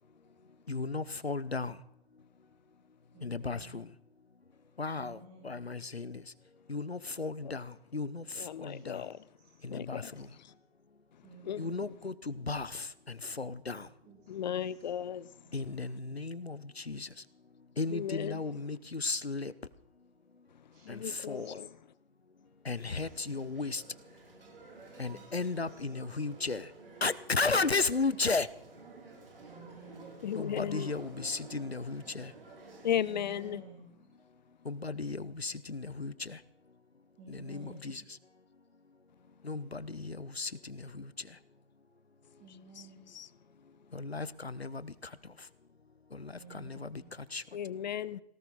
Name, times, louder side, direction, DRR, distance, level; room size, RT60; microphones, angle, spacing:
voice 1, 0.7-1.8 3.2-3.9 4.8-6.3 6.7-9.1 9.6-10.3 11.6-13.9 15.5-17.2 17.8-19.5 20.9-21.6 22.6-23.8 25.0-26.7 27.0-28.5 30.3-32.3 34.6-36.4 37.3-38.0 39.4-41.4 43.9-45.5 46.1-47.4, left 3 dB, 90° left, 0.9 m, -35 dB
voice 2, 3.1-3.8 4.9-5.6 8.7-9.6 10.0-10.2 11.2-11.9 14.0-14.3 14.6-14.9 15.2-15.6 20.7-21.6 22.8-23.2 25.0-25.9 27.5-27.7 29.4-30.1 33.1-34.2 37.2-37.8 42.4-43.0 46.4-47.1, right 3 dB, 20° right, 3.2 m, -54 dB
voice 3, 8.4-9.3 9.7-10.1 10.4-10.5 11.4-11.6 14.3-15.3 15.7-15.8 17.9-18.4 20.5-21.7 30.2-30.9 32.8-33.6 42.8-42.9 43.1-43.3 47.5-48.2, left 9 dB, 45° left, 0.7 m, -36 dB
sound 1, 22.8-33.5, right 3 dB, 65° right, 6.2 m, -52 dB
19.0 x 17.5 x 4.0 m
figure-of-eight pair, 120°, 31 cm